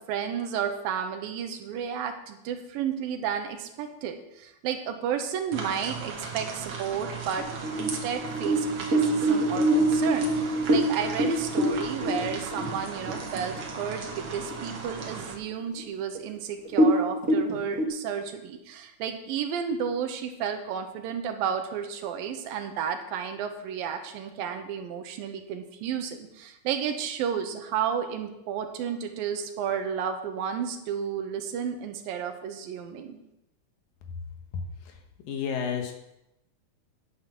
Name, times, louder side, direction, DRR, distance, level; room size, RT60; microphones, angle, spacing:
voice 1, 0.1-7.5 7.8-33.2, right 7 dB, 80° right, 7 dB, 2.6 m, -32 dB
sound 1, 5.5-15.3, right 5 dB, 60° right, 1.3 m, -37 dB
sound 2, 7.4-13.2 13.6-13.7 14.1-14.6 15.0-15.1 15.8-15.9 16.1-16.3 16.7-17.8, right 1 dB, 40° right, 1.1 m, -24 dB
voice 2, 34.5-34.9 35.3-35.9, left 6 dB, 75° left, 4 dB, 2.9 m, -31 dB
9.8 x 8.4 x 6.0 m, 0.88 s
omnidirectional pair, 4.2 m